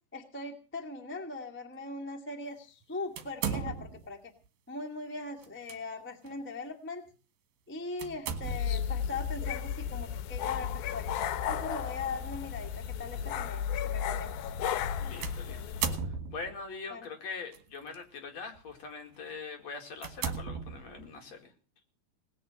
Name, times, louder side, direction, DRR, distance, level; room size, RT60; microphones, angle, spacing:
voice 1, 0.1-4.3 4.7-7.1 7.7-11.1 11.5-14.3 16.9-17.1, left 3 dB, 5° left, 2 dB, 0.9 m, -40 dB
sound 1, 3.2-4.1 5.4-5.8 6.2-6.4 8.0-8.9 11.0-11.3 12.1-12.2 15.2-16.6 17.5-18.0 18.5-18.7 19.3-19.4 20.0-21.2, right 6 dB, 70° right, 3.3 m, -36 dB
sound 2, 8.4-16.0, left 8 dB, 75° left, 2.7 m, -34 dB
voice 2, 15.0-21.5, left 4 dB, 50° left, 4 dB, 3.0 m, -43 dB
19.0 x 8.6 x 7.6 m, 0.38 s
omnidirectional pair, 4.4 m